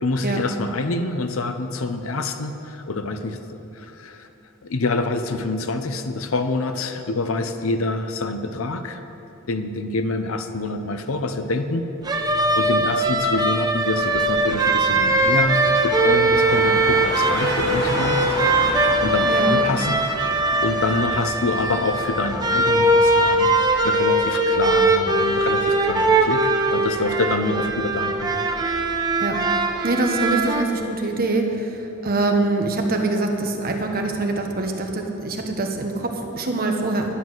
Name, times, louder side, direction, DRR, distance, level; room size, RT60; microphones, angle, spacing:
voice 1, 0.0-3.4 3.8-4.3 4.6-9.0 9.5-11.9 12.2-15.6 15.8-18.3 18.8-19.9 20.6-23.5 23.8-26.4 26.7-28.4, left 2 dB, 75° left, 8 dB, 0.7 m, -26 dB
sound 1, 12.1-30.6, right 2 dB, 20° right, 0.8 m, -21 dB
Car, 13.9-23.4, left 1 dB, 60° left, 2.8 m, -32 dB
voice 2, 19.3-19.6 29.2-29.4 29.8-31.7 32.0-37.0, right 2 dB, 45° right, 3 dB, 1.1 m, -24 dB
10.0 x 9.5 x 6.2 m, 2.9 s
head